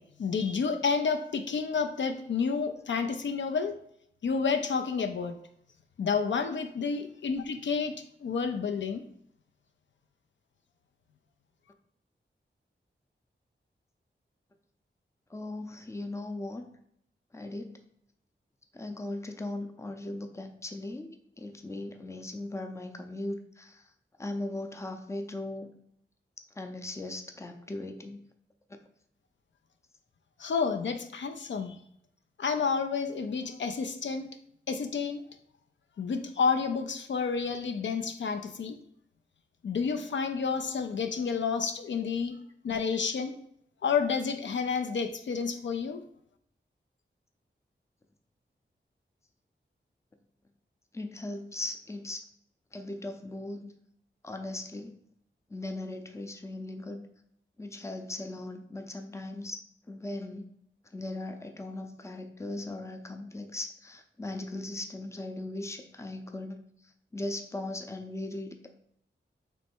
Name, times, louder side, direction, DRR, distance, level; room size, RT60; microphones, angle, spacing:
voice 1, 0.2-3.8 4.2-5.4 6.0-7.9 8.2-9.0 30.4-31.8 32.4-34.3 34.7-35.2 36.0-38.8 39.6-42.4 42.6-43.4 43.8-46.0, left 5 dB, 70° left, 7 dB, 0.4 m, -30 dB
voice 2, 15.3-16.6 17.3-17.8 18.7-23.8 24.2-25.7 26.6-28.2 50.9-52.2 52.7-53.7 54.2-55.0 55.5-57.1 57.6-59.6 59.9-60.4 60.9-66.6 67.1-68.8, left 2 dB, 15° left, 5 dB, 0.5 m, -38 dB
3.2 x 3.1 x 4.4 m, 0.70 s
wide cardioid pair, 80°, 20 cm